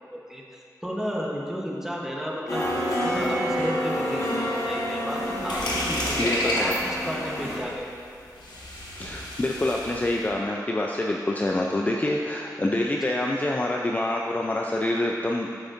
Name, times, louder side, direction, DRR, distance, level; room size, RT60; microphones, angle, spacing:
voice 1, 0.3-7.9, equal, 5° right, -2 dB, 0.9 m, -33 dB
sound 1, 2.5-7.6, equal, 45° left, 1.5 m, -28 dB
sound 2, 5.2-10.3, equal, 80° left, 1.1 m, -31 dB
voice 2, 6.2-6.8 9.0-15.5, left 1 dB, 20° left, -1 dB, 0.4 m, -26 dB
9.2 x 5.2 x 2.5 m, 2.6 s
wide cardioid pair, 80°, 7 cm